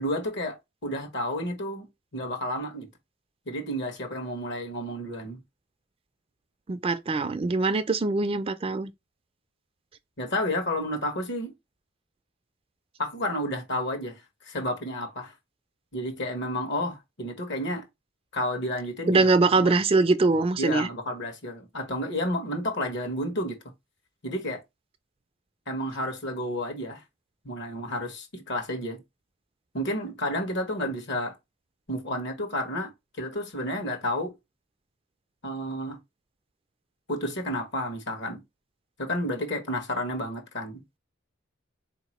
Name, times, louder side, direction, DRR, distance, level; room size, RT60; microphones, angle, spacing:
voice 1, 0.0-1.9 2.1-2.9 3.5-5.4 10.2-11.5 13.0-15.3 15.9-17.8 18.3-19.3 19.6-19.8 20.6-23.6 24.2-24.6 25.7-27.0 27.4-29.0 29.7-31.4 31.9-32.9 33.2-34.3 35.4-36.0 37.1-38.4 39.0-40.8, left 1 dB, 60° left, 1.3 m, -31 dB
voice 2, 6.7-8.9 19.1-20.9, right 3 dB, 30° right, 0.4 m, -23 dB
4.2 x 2.9 x 3.0 m
head